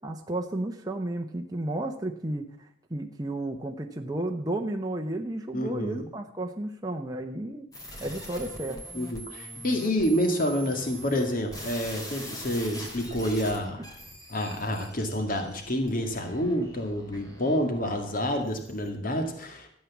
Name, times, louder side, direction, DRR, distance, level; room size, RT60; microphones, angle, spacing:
voice 1, 0.0-7.7 8.0-8.8, right 1 dB, 20° right, 2 dB, 1.0 m, -33 dB
voice 2, 5.5-6.1 8.9-13.8 14.3-19.7, equal, 50° left, 5 dB, 2.0 m, -28 dB
sound 1, 7.7-18.9, equal, 20° left, 3.4 m, -43 dB
13.5 x 8.7 x 7.3 m, 0.67 s
head